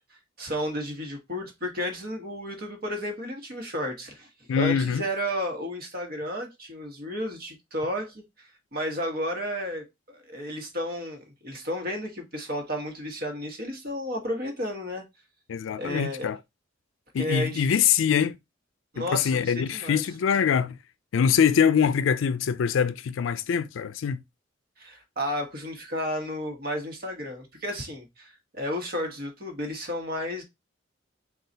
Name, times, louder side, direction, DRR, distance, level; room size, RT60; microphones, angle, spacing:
voice 1, 0.1-15.0 15.8-16.3 17.2-17.7 18.9-20.0 24.8-30.4, equal, 50° right, 1.2 m, -32 dB
voice 2, 4.5-5.0 15.5-16.4 17.1-18.4 19.0-20.8 21.1-24.2, left 7 dB, 80° left, 0.4 m, -24 dB
3.8 x 2.4 x 3.9 m
head